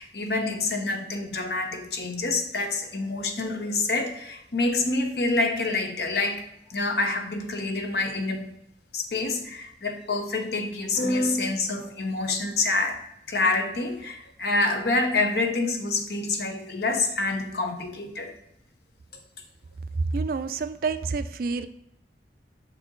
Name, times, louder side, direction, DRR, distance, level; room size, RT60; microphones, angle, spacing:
voice 1, 0.0-6.4 6.7-8.5 8.9-12.9 13.3-18.3, left 3 dB, 60° left, 5 dB, 0.9 m, -27 dB
voice 2, 20.1-21.7, right 4 dB, 50° right, 11 dB, 0.4 m, -28 dB
6.5 x 4.5 x 3.7 m, 0.79 s
head